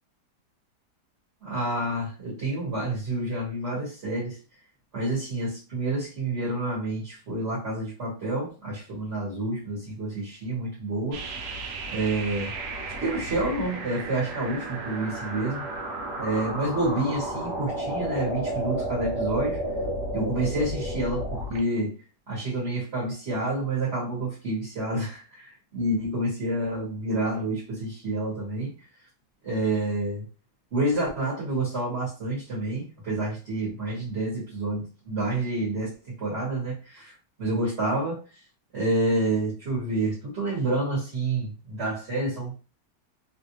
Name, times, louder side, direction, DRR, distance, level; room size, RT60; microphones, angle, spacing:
voice 1, 1.4-4.4 4.9-11.2 11.9-12.5 13.0-15.7 16.2-19.6 20.1-22.0 22.3-28.7 29.4-30.2 30.7-37.1 37.4-38.2 38.7-42.6, right 2 dB, 45° right, 1.4 m, -28 dB
sound 1, 11.1-21.6, right 1 dB, 80° right, 1.4 m, -32 dB
3.2 x 2.5 x 2.8 m
omnidirectional pair, 1.8 m